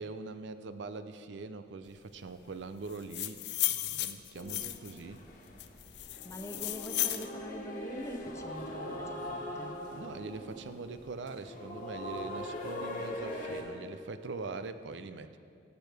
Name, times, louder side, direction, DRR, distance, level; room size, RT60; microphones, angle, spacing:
voice 1, 0.0-3.4 3.7-5.2 9.9-15.4, right 3 dB, 75° right, 11 dB, 0.5 m, -42 dB
sound 1, 2.9-5.0 5.6-7.3, left 15 dB, 60° left, 0.4 m, -34 dB
sound 2, 4.4-13.6, left 1 dB, 45° left, 1.4 m, -41 dB
voice 2, 6.2-9.8, left 1 dB, 15° left, 6 dB, 0.5 m, -44 dB
15.5 x 8.2 x 3.4 m, 2.4 s
head